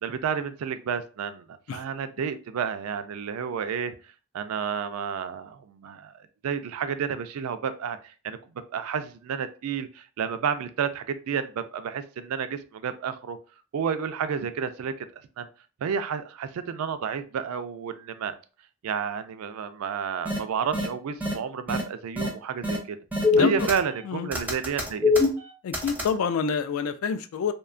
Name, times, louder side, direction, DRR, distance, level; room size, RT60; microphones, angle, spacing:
voice 1, 0.0-4.0 4.3-8.4 8.7-13.4 13.7-15.1 15.4-15.5 15.8-18.3 18.8-23.0 23.4-25.1, right 7 dB, 85° right, 0.3 m, -31 dB
sound 1, 20.2-20.4 20.7-20.9 21.2-21.3 21.7-21.8 22.2-22.3 22.6-22.8 23.1-24.0 24.3-26.1, left 3 dB, 10° right, 0.4 m, -23 dB
voice 2, 23.3-23.7 24.0-24.3 25.6-27.5, left 6 dB, 75° left, 0.3 m, -27 dB
2.7 x 2.2 x 2.4 m
head